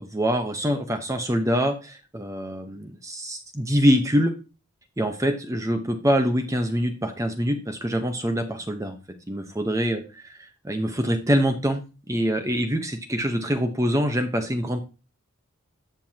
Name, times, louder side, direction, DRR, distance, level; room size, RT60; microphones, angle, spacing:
voice 1, 0.0-4.3 5.0-9.0 9.3-11.8 12.1-14.8, equal, 15° right, 6 dB, 0.9 m, -25 dB
13.5 x 7.0 x 2.8 m, 0.32 s
head